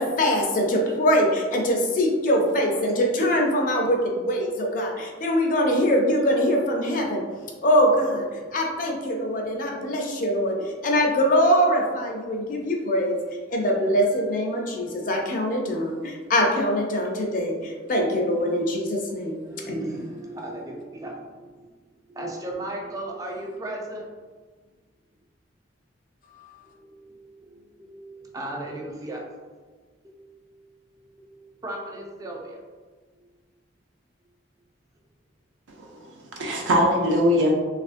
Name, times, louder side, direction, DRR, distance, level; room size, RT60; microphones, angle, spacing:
voice 1, 0.0-7.2 7.6-8.3 8.5-13.2 13.5-19.4 19.7-20.1 26.4-26.5, equal, 45° left, 1 dB, 0.5 m, -23 dB
voice 2, 19.4-21.7 22.1-24.1 26.6-29.2 30.0-30.2 30.4-30.5 30.9-32.6 33.2-33.3, right 1 dB, 20° right, -1 dB, 0.4 m, -37 dB
voice 3, 35.8-37.5, equal, 90° right, -1 dB, 0.6 m, -22 dB
3.0 x 2.4 x 2.4 m, 1.4 s
head